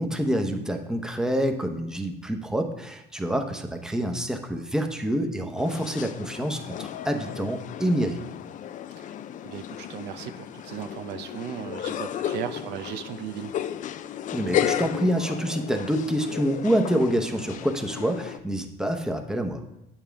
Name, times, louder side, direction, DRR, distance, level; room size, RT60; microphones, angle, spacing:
voice 1, 0.0-8.2 14.3-19.6, equal, 5° right, 4 dB, 0.8 m, -27 dB
sound 1, 5.6-18.4, left 10 dB, 50° left, 0.4 m, -34 dB
voice 2, 9.4-13.5, right 10 dB, 85° right, 9 dB, 0.6 m, -37 dB
8.6 x 7.2 x 3.5 m, 0.90 s
cardioid pair, 110°, 17 cm